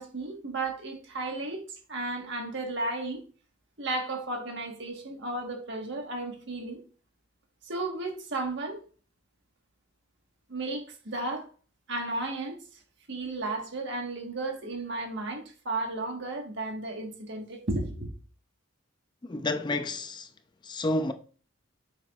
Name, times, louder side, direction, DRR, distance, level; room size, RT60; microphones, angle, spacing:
voice 1, 0.0-3.2 3.8-6.8 7.6-8.8 10.5-11.5 11.9-12.6 13.1-18.1, right 2 dB, 60° right, 1.5 m, -34 dB
voice 2, 19.3-20.3 20.6-21.1, left 2 dB, 20° left, 0.4 m, -30 dB
7.2 x 5.9 x 2.4 m
head